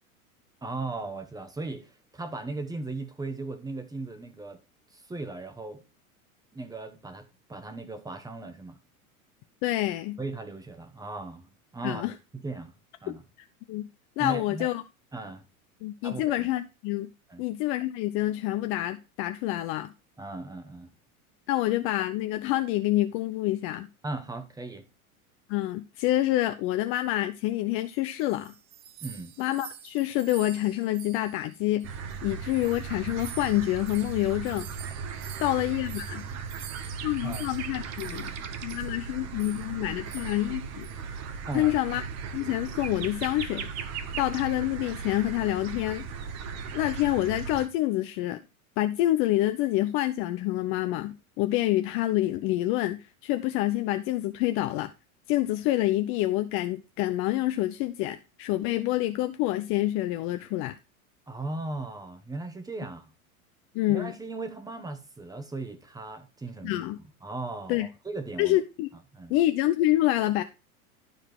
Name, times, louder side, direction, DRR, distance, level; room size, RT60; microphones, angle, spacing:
voice 1, 0.6-4.6 4.9-5.8 6.5-8.8 10.2-11.5 11.7-12.7 13.0-13.2 14.2-14.7 15.1-15.4 16.0-16.5 17.3-17.4 20.2-20.9 24.0-24.9 29.0-29.3 37.2-37.5 41.5-41.8 61.3-63.1 63.9-66.8 67.2-68.6 69.1-69.3, right 3 dB, 10° right, 1.0 m, -37 dB
voice 2, 9.6-10.2 11.8-12.1 13.1-13.2 13.7-13.9 14.2-14.8 15.8-17.1 17.4-19.9 21.5-23.9 25.5-28.5 29.4-31.9 32.2-34.7 35.4-36.2 37.0-38.3 38.6-40.9 41.5-42.0 42.3-43.7 44.2-46.1 46.7-48.4 48.8-54.9 55.3-60.8 63.7-64.1 66.6-67.0 67.7-67.9 68.4-68.9 69.3-70.4, left 15 dB, 30° left, 0.5 m, -27 dB
sound 1, 27.9-32.2 32.5-38.4 38.7-38.9 39.4-39.7 40.1-40.5 40.8-41.0 41.5-41.8, right 8 dB, 65° right, 1.0 m, -48 dB
sound 2, 31.8-47.7, right 6 dB, 40° right, 1.2 m, -37 dB
12.0 x 4.8 x 4.6 m
figure-of-eight pair, 90°, 43 cm